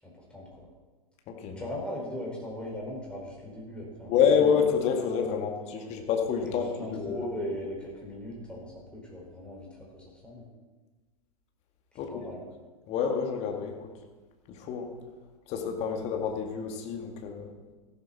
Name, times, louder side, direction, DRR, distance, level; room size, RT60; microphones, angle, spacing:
voice 1, 0.0-0.7 1.5-4.4 5.8-5.9 6.4-10.5 12.0-12.4, left 1 dB, 5° left, -3 dB, 5.0 m, -39 dB
voice 2, 1.3-1.6 4.1-7.2 12.0-12.3 12.9-13.9 14.5-14.9 15.5-17.5, left 7 dB, 35° left, 4 dB, 2.0 m, -28 dB
14.5 x 12.0 x 4.2 m, 1.3 s
figure-of-eight pair, 100°, 20 cm